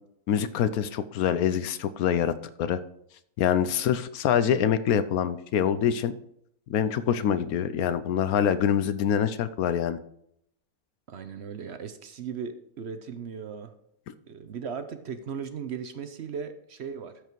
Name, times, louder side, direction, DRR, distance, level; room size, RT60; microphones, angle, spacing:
voice 1, 0.3-2.8 3.4-6.1 6.7-10.0, left 9 dB, 85° left, 13 dB, 1.1 m, -25 dB
voice 2, 11.1-13.7 14.3-17.2, right 6 dB, 55° right, 9 dB, 0.9 m, -37 dB
13.5 x 5.0 x 4.6 m, 0.72 s
omnidirectional pair, 1.5 m